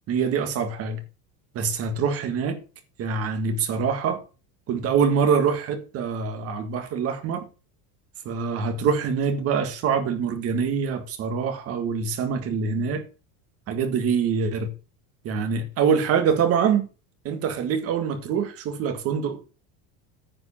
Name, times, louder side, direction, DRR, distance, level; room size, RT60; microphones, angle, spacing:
voice 1, 0.1-1.0 1.5-2.6 3.0-4.2 4.7-7.5 8.3-13.0 13.7-14.7 15.2-16.9 17.2-19.4, right 6 dB, 40° right, 1.9 m, -24 dB
9.6 x 4.9 x 7.4 m
cardioid pair, 155°, 35 cm